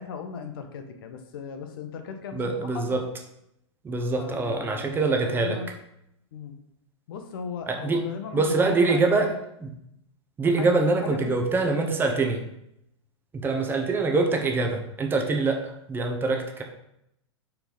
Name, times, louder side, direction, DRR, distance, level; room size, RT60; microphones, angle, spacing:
voice 1, 0.0-3.0 4.2-5.7 6.3-6.6 7.1-9.4 10.6-10.7 11.0-11.7, left 6 dB, 50° left, 7 dB, 0.7 m, -37 dB
voice 2, 2.3-3.0 3.8-5.6 7.7-8.1 8.3-9.3 9.6-9.7 10.4-12.4 13.4-16.6, right 3 dB, 15° right, 3 dB, 0.8 m, -24 dB
5.4 x 4.4 x 3.9 m, 0.78 s
figure-of-eight pair, 100°, 15 cm